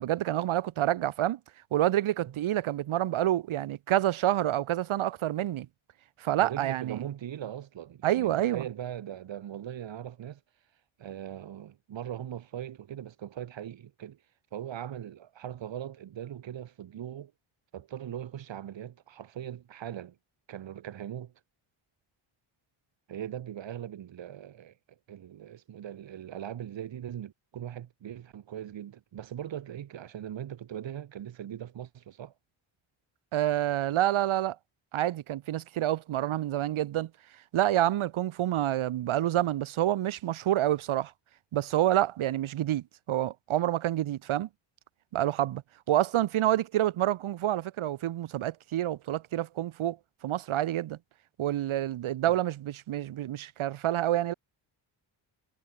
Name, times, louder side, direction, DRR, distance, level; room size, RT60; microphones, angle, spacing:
voice 1, 0.0-1.4 1.7-5.7 6.2-7.0 8.0-8.7 33.3-34.6 34.9-37.1 37.5-41.1 41.5-44.5 45.1-45.6 45.9-50.0 50.2-51.0 51.4-54.3, right 13 dB, 85° right, 2.2 m, -28 dB
voice 2, 6.4-10.4 11.0-14.2 14.5-17.3 17.7-20.1 20.5-21.3 23.1-24.7 25.1-32.3, right 10 dB, 65° right, 4.9 m, -40 dB
wide cardioid pair, 160°, 48 cm